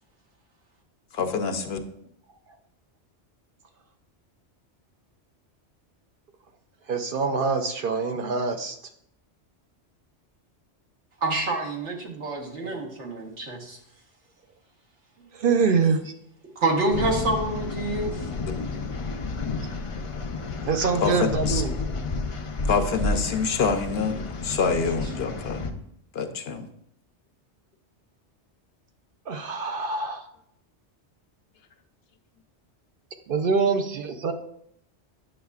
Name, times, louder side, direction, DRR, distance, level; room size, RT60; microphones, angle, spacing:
voice 1, 1.1-1.8 21.0-21.6 22.6-25.6 26.1-26.7, left 5 dB, 65° left, 7 dB, 0.8 m, -26 dB
voice 2, 6.9-8.8 12.6-12.8 15.3-16.1 18.0-18.2 20.6-21.7 29.3-30.2 33.3-34.3, right 4 dB, 60° right, 6 dB, 0.7 m, -25 dB
voice 3, 11.2-13.8 16.5-18.3, right 2 dB, 80° right, -1 dB, 1.6 m, -27 dB
sound 1, 16.9-25.7, left 3 dB, 45° left, 0.4 m, -31 dB
8.7 x 6.3 x 2.3 m, 0.72 s
omnidirectional pair, 1.2 m